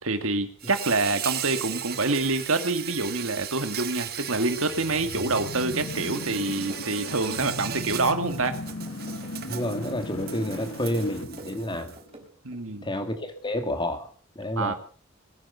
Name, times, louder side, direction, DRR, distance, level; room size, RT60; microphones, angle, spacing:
voice 1, 0.0-8.6 12.4-12.9 14.6-14.7, right 3 dB, 70° right, 9 dB, 2.1 m, -26 dB
Insect, 0.6-12.0, right 10 dB, 45° right, 1.5 m, -37 dB
sound 1, 1.3-1.5 1.7-3.3 3.6-6.4 6.7-7.6 7.9-9.5 9.8-10.7 11.0-12.6 12.9-13.1, right 2 dB, 30° right, 4.1 m, -49 dB
sound 2, 4.1-12.3, left 2 dB, 70° left, 1.0 m, -38 dB
voice 2, 9.5-12.0 12.8-14.1 14.4-14.7, left 1 dB, 20° left, 7 dB, 2.4 m, -29 dB
22.0 x 9.6 x 6.9 m, 0.44 s
head